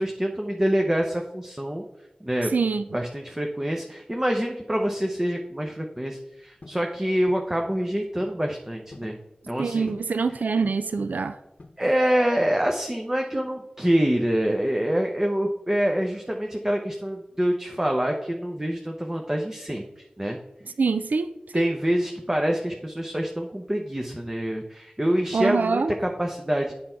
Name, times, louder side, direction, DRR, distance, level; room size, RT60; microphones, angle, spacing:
voice 1, 0.0-1.8 2.2-9.2 9.5-9.9 11.8-20.4 21.5-26.7, equal, 15° right, 0.8 m, -26 dB
voice 2, 2.5-2.9 9.6-11.4 20.8-21.7 25.3-25.9, right 4 dB, 80° right, 0.4 m, -25 dB
sound 1, 6.6-6.9 7.3-7.5 8.2-8.4 8.7-9.2 9.9-10.2 10.6-11.0 11.6-12.1, left 2 dB, 55° left, 0.9 m, -46 dB
8.6 x 5.7 x 4.5 m
wide cardioid pair, 60°, 3 cm